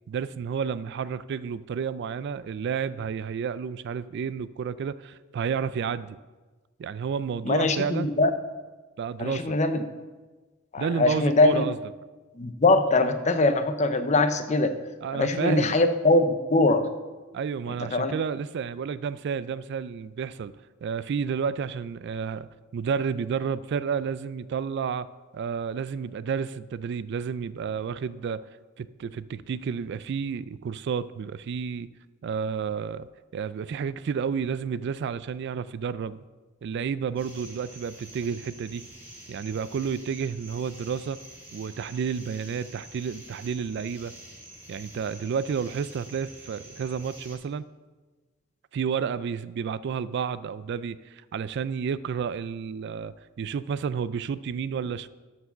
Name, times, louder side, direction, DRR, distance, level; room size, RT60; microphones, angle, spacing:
voice 1, 0.1-6.2 6.8-8.1 9.0-9.6 10.8-11.8 15.0-15.8 17.3-20.5 20.8-25.1 25.3-28.4 28.8-31.9 32.2-33.1 33.3-36.2 36.6-38.8 39.3-41.2 41.5-44.1 44.7-47.6 48.7-55.1, right 6 dB, 55° right, 16 dB, 0.3 m, -31 dB
voice 2, 7.4-8.3 9.2-9.8 10.7-11.6 12.4-14.7 15.1-16.8 17.9-18.1, left 2 dB, 35° left, 9 dB, 0.6 m, -22 dB
sound 1, 37.2-47.4, right 1 dB, 10° right, 3.1 m, -47 dB
12.5 x 4.7 x 5.7 m, 1.3 s
head